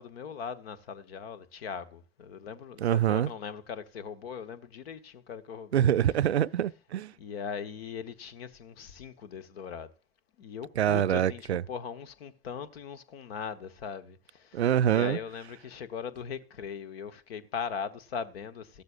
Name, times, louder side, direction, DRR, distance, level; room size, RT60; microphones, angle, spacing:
voice 1, 0.0-5.8 7.2-9.9 10.4-14.6 14.9-18.8, left 6 dB, 65° left, 1.2 m, -39 dB
voice 2, 2.8-3.3 5.7-7.1 10.8-11.6 14.5-15.2, right 10 dB, 80° right, 0.5 m, -25 dB
15.0 x 12.0 x 2.4 m
figure-of-eight pair, 70°, 32 cm